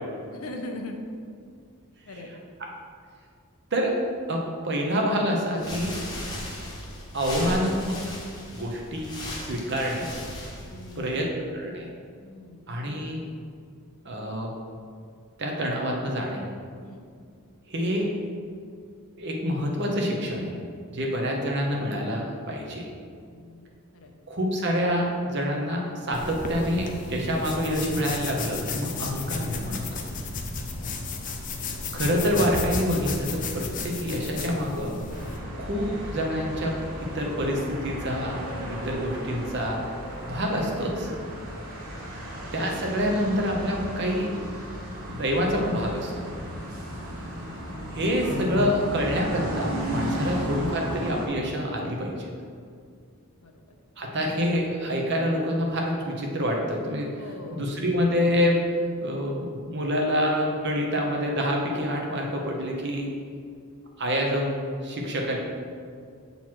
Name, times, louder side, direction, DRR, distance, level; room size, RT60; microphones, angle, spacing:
voice 1, 0.3-1.0 2.1-2.3 10.6-11.3 12.2-12.6 16.8-17.1 23.2-24.1 30.7-30.9 42.1-42.3 47.0-47.4 53.4-53.7 57.0-57.6, left 2 dB, 70° left, 3 dB, 0.7 m, -42 dB
voice 2, 4.3-6.0 7.1-8.0 8.5-9.2 9.4-10.1 11.0-11.3 11.5-11.9 12.7-13.2 14.0-14.5 15.4-16.4 17.7-18.1 19.2-20.5 20.9-22.9 24.3-30.0 31.9-34.9 35.6-38.4 38.7-39.8 40.3-41.1 42.5-44.3 45.0-46.3 47.9-52.3 54.0-57.2 57.5-58.6 59.0-63.1 64.0-65.4, equal, 50° right, 0 dB, 1.0 m, -27 dB
sound 1, 5.5-11.2, left 1 dB, 20° left, 1.0 m, -37 dB
sound 2, 26.1-35.4, left 3 dB, 35° left, 0.6 m, -33 dB
sound 3, 35.1-51.3, equal, 85° right, 1.3 m, -34 dB
7.3 x 4.0 x 4.6 m, 2.2 s
head